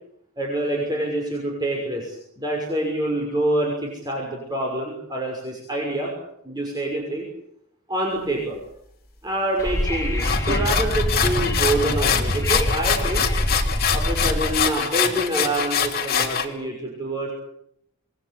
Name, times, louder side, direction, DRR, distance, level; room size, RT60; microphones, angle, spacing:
voice 1, 0.4-6.1 6.4-7.3 7.9-8.6 9.2-13.2 13.9-17.3, right 1 dB, 20° right, -1 dB, 6.2 m, -26 dB
Wind / Subway metro underground, 9.6-14.6, equal, 15° left, 3.8 m, -25 dB
sound 1, 10.2-16.4, left 7 dB, 45° left, 3.1 m, -24 dB
26.5 x 21.5 x 8.6 m, 0.74 s
head